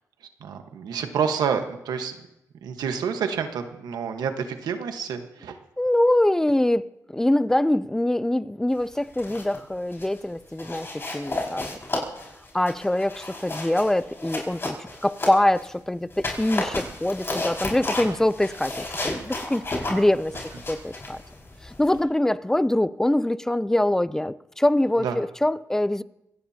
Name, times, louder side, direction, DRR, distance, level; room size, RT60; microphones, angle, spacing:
voice 1, 0.4-2.1 2.6-5.6 18.1-18.2 25.0-25.1, right 7 dB, 90° right, 1.4 m, -28 dB
voice 2, 5.8-11.7 12.5-14.8 15.0-20.4 20.7-21.2 21.6-26.0, left 1 dB, 5° left, 0.5 m, -24 dB
sound 1, 9.0-9.6 9.9-10.2 10.6-15.7 16.1-22.0, left 2 dB, 40° left, 5.6 m, -33 dB
25.0 x 18.0 x 2.9 m
cardioid pair, 75°, 7 cm